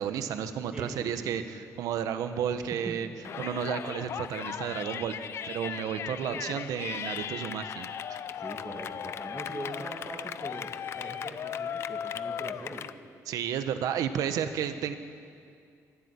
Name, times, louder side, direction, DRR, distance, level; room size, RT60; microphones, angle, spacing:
voice 1, 0.0-3.1 3.4-7.9 13.3-15.0, right 8 dB, 85° right, 9 dB, 1.4 m, -32 dB
voice 2, 0.7-1.3 2.7-3.0 8.4-10.7 11.0-12.8, right 2 dB, 15° right, -2 dB, 2.2 m, -41 dB
Yell, 3.2-12.9, left 8 dB, 45° left, 0.6 m, -37 dB
25.0 x 13.0 x 9.7 m, 2.3 s
cardioid pair, 170°, 6 cm